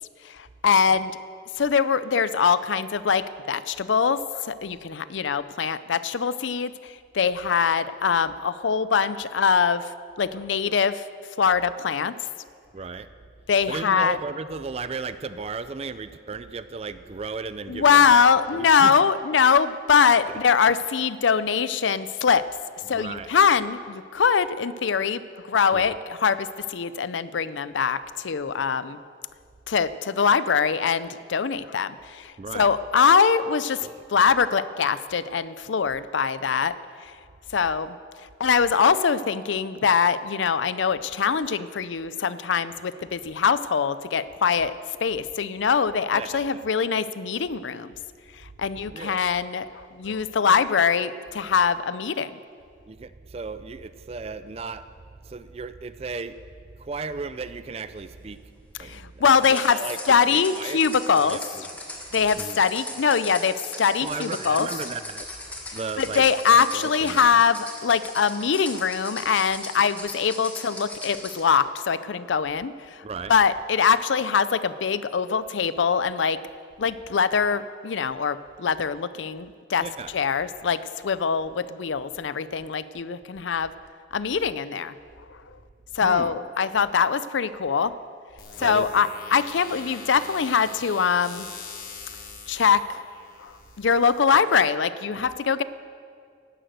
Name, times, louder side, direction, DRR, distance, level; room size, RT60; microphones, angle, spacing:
voice 1, 0.2-1.2 1.6-6.7 7.1-9.9 10.2-11.0 11.4-12.1 13.5-14.2 17.7-22.4 22.9-25.2 25.5-29.0 29.7-36.7 37.5-37.9 38.4-44.7 45.0-47.9 48.6-49.7 50.0-52.3 58.8-59.8 60.1-61.4 62.1-64.7 66.0-72.7 73.3-76.4 76.8-79.8 80.1-83.7 84.1-84.9 85.9-87.9 88.6-91.5 92.5-93.0 93.4-95.6, left 6 dB, 90° left, 15 dB, 0.5 m, -22 dB
voice 2, 12.7-13.1 13.7-18.2 18.5-19.0 20.3-20.4 22.9-23.3 25.7-25.9 32.4-32.7 33.8-33.9 46.1-46.4 48.8-49.2 52.9-54.8 55.2-56.4 56.8-58.4 58.8-59.2 59.5-60.8 61.1-61.6 62.4-62.6 64.0-65.3 65.7-66.2 66.5-67.4 73.0-73.3 79.8-80.1 86.0-86.3 88.6-88.9, right 4 dB, 35° right, 13 dB, 0.4 m, -35 dB
sound 1, 59.4-71.4, left 1 dB, 10° left, 1.5 m, -39 dB
sound 2, 88.4-94.4, left 5 dB, 50° left, 1.6 m, -43 dB
11.5 x 10.0 x 7.9 m, 2.2 s
head